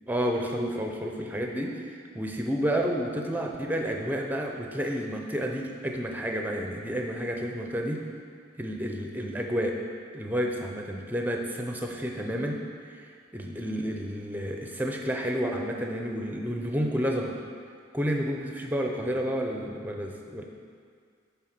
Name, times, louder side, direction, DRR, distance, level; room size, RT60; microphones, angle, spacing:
voice 1, 0.1-8.0 8.6-9.8 10.1-12.6 12.9-17.4 17.9-20.5, equal, 10° right, 2 dB, 0.5 m, -30 dB
8.8 x 3.5 x 6.0 m, 2.2 s
head